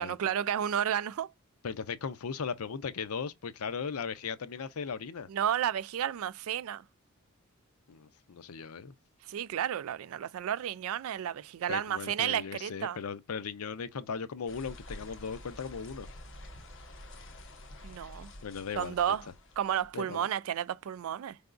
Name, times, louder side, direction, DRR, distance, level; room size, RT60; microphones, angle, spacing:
voice 1, 0.0-1.3 5.3-6.8 9.3-13.0 17.8-18.3 18.8-19.2 19.6-21.4, right 9 dB, 70° right, 0.3 m, -32 dB
voice 2, 1.6-5.3 7.9-8.9 11.7-16.1 18.4-19.0 19.9-20.3, left 6 dB, 80° left, 0.6 m, -37 dB
sound 1, 14.5-19.9, left 1 dB, 60° left, 1.1 m, -48 dB
4.7 x 3.4 x 2.5 m
head